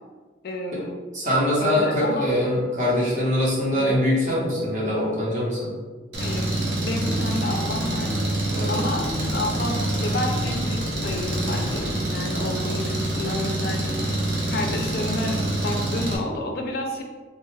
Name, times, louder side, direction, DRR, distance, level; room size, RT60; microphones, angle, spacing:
voice 1, 0.4-1.0 1.6-2.3 3.7-3.9 6.2-8.1 8.7-14.2 14.5-17.0, left 1 dB, 55° left, 2 dB, 0.4 m, -30 dB
voice 2, 1.1-5.7 8.5-8.7, left 1 dB, 40° right, -5 dB, 0.9 m, -23 dB
Engine, 6.1-16.2, right 1 dB, 75° right, 0.7 m, -26 dB
3.2 x 2.2 x 3.2 m, 1.4 s
head